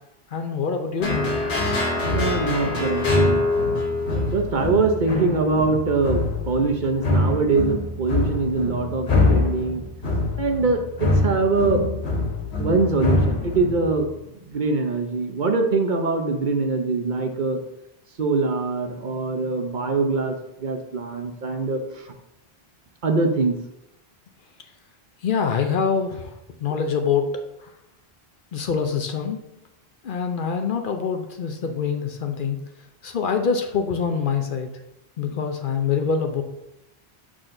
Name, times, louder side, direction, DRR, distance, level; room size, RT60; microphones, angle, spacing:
voice 1, 0.3-1.2 25.2-26.3 26.6-27.3 28.5-29.4 30.0-32.6 33.0-34.7 35.2-36.4, left 6 dB, 60° left, 5 dB, 0.7 m, -25 dB
sound 1, 1.0-14.1, left 2 dB, 85° left, 1.4 m, -24 dB
voice 2, 2.1-3.5 4.0-9.8 10.4-11.8 12.6-14.1 14.5-17.6 18.2-20.4 20.6-22.1 23.0-23.6, right 3 dB, 50° right, 4 dB, 0.8 m, -23 dB
6.3 x 6.0 x 2.6 m, 0.86 s
omnidirectional pair, 1.1 m